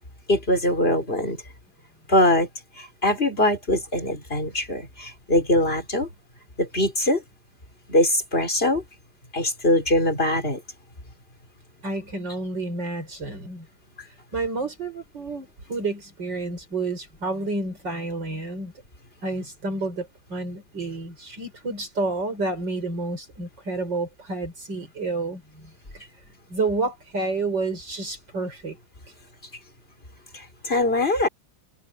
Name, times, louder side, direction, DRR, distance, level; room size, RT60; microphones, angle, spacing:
voice 1, 0.3-1.4 2.1-2.5 2.8-6.1 6.6-7.2 7.9-8.8 9.3-10.6 30.3-31.3, left 1 dB, 30° left, 5.3 m, -22 dB
voice 2, 11.8-13.7 14.0-18.7 19.2-26.0 26.5-28.8, right 3 dB, 65° right, 6.3 m, -30 dB
omnidirectional pair, 2.1 m